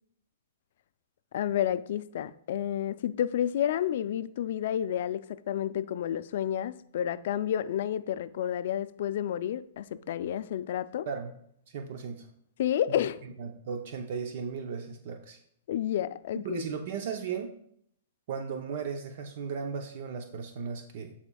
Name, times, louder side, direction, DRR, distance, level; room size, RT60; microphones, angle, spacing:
voice 1, 1.3-11.1 12.6-13.2 15.7-16.6, left 10 dB, 60° left, 0.3 m, -30 dB
voice 2, 11.7-12.3 12.9-13.0 13.4-15.4 16.4-17.5 18.3-21.1, right 6 dB, 55° right, 0.6 m, -36 dB
11.5 x 4.3 x 2.3 m
hypercardioid pair, 145°, 0 cm